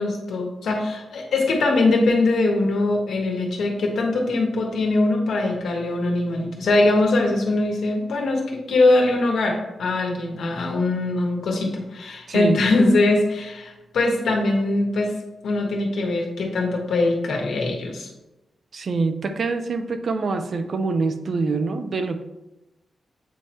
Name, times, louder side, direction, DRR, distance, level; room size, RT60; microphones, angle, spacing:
voice 1, 0.0-15.1 15.4-18.1, left 2 dB, 85° left, 1 dB, 1.3 m, -22 dB
voice 2, 12.3-12.6 18.7-22.2, right 4 dB, 50° right, 8 dB, 0.5 m, -25 dB
8.1 x 3.0 x 4.3 m, 0.98 s
wide cardioid pair, 135°, 0 cm